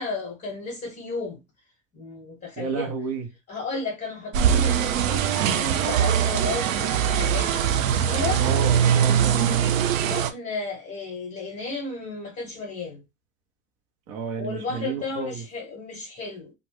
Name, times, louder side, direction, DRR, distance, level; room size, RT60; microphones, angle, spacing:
voice 1, 0.0-1.4 1.9-2.9 3.5-7.5 7.8-8.4 10.0-13.0 14.4-16.5, left 3 dB, 25° left, 0.9 m, -33 dB
voice 2, 2.6-3.3 8.3-9.6 14.1-15.4, right 6 dB, 50° right, 0.7 m, -31 dB
sound 1, 4.3-10.3, right 8 dB, 80° right, 0.5 m, -22 dB
2.5 x 2.1 x 3.2 m
hypercardioid pair, 100°, 39 cm